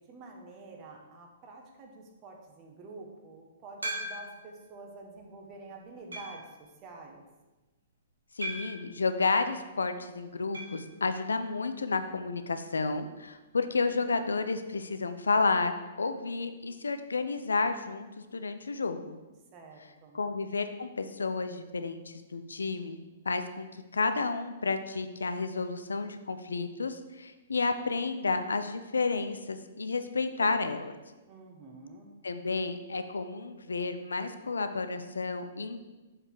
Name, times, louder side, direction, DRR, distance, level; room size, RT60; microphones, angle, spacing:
voice 1, 0.1-6.4 6.8-7.2 19.5-20.2 31.3-32.1, right 3 dB, 35° right, 1 dB, 1.5 m, -48 dB
sound 1, 3.8-4.5 5.1-5.2 6.1-6.5 8.4-8.9 10.5-10.8 11.1-11.2 11.5-11.6 13.6-13.7, right 1 dB, 90° right, 1.8 m, -38 dB
voice 2, 8.3-19.2 20.1-23.7 23.9-30.9 32.2-35.8, left 4 dB, 85° left, 9 dB, 0.5 m, -31 dB
6.8 x 5.4 x 4.7 m, 1.1 s
hypercardioid pair, 120°, 0 cm